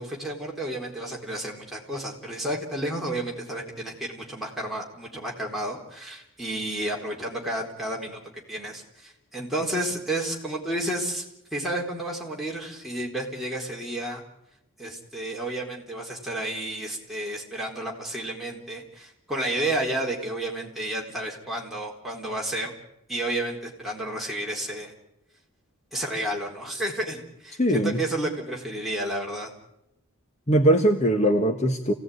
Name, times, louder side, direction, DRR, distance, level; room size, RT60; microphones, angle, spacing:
voice 1, 0.0-11.2 11.5-14.2 14.8-22.7 23.1-24.9 25.9-29.5, right 1 dB, ahead, -3 dB, 4.1 m, -31 dB
voice 2, 27.6-28.0 30.5-31.9, right 1 dB, 30° left, 4 dB, 1.4 m, -21 dB
27.5 x 17.5 x 9.5 m, 0.87 s
head